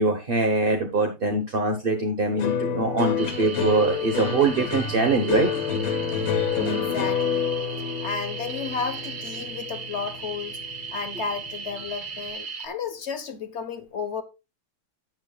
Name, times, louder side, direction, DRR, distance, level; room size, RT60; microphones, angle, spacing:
voice 1, 0.0-5.5, right 3 dB, 35° right, 0.9 m, -23 dB
sound 1, 2.4-10.9 11.2-11.8, left 7 dB, 80° left, 2.0 m, -28 dB
sound 2, 3.2-12.7, right 5 dB, 65° right, 0.5 m, -37 dB
voice 2, 6.6-7.5 8.0-10.6 10.9-14.2, left 6 dB, 45° left, 1.1 m, -33 dB
12.0 x 8.6 x 2.3 m
omnidirectional pair, 2.1 m